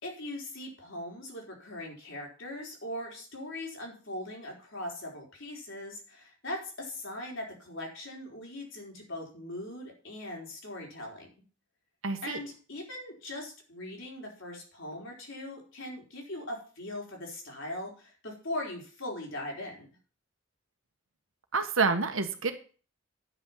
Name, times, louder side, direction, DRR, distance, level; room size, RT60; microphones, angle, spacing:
voice 1, 0.0-11.3 12.2-19.9, left 1 dB, 65° left, -1 dB, 4.0 m, -40 dB
voice 2, 12.0-12.4 21.5-22.5, right 4 dB, 75° right, 7 dB, 1.5 m, -28 dB
9.9 x 6.2 x 7.4 m, 0.39 s
head